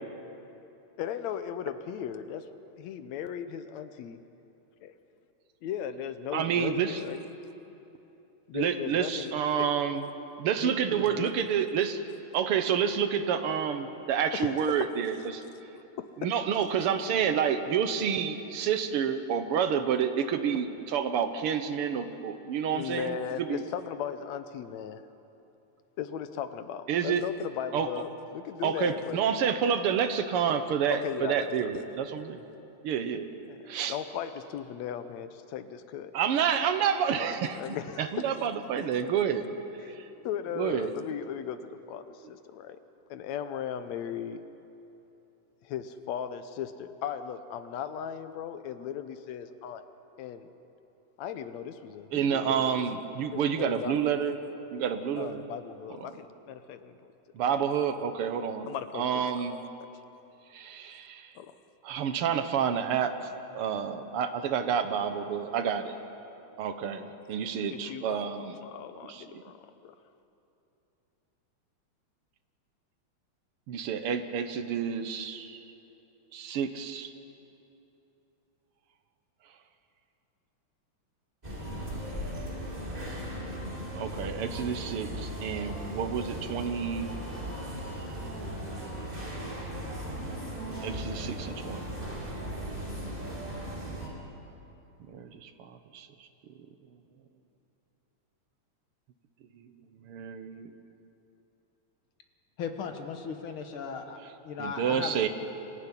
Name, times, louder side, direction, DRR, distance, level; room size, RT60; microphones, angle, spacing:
voice 1, 1.0-2.5 2.8-4.2 4.8-4.9 5.6-7.3 8.5-9.3 9.6-9.7 10.6-11.3 14.3-14.9 16.0-16.3 22.7-25.0 26.0-29.2 30.9-31.9 33.5-36.1 37.5-38.4 38.8-38.9 40.2-42.8 43.1-44.4 45.6-49.8 50.2-50.5 51.2-52.9 53.3-54.0 55.2-56.9 57.5-57.6 58.7-59.7 61.4-61.5 67.7-68.2 68.6-70.0, left 9 dB, 75° left, 11 dB, 2.0 m, -37 dB
voice 2, 6.3-7.0 8.5-10.0 10.4-12.0 12.3-15.4 16.2-23.6 26.9-27.2 27.7-27.9 28.6-32.4 32.8-33.3 33.7-34.0 36.1-37.6 38.0-39.5 39.9-40.1 40.6-40.9 52.1-54.4 54.7-55.4 57.4-58.7 58.9-59.6 60.5-61.3 61.8-63.2 63.5-65.9 66.6-68.6 69.1-69.4 73.7-75.6 76.3-77.1 83.9-87.1 90.8-91.8 92.2-92.3 95.1-96.1 100.1-100.7 104.6-105.3, right 7 dB, 60° right, 9 dB, 1.6 m, -29 dB
sound 1, 81.4-94.1, right 1 dB, 15° right, 3.1 m, -37 dB
voice 3, 102.6-104.2 104.4-105.3, left 6 dB, 55° left, 6 dB, 1.9 m, -37 dB
25.5 x 14.5 x 9.9 m, 3.0 s
omnidirectional pair, 3.4 m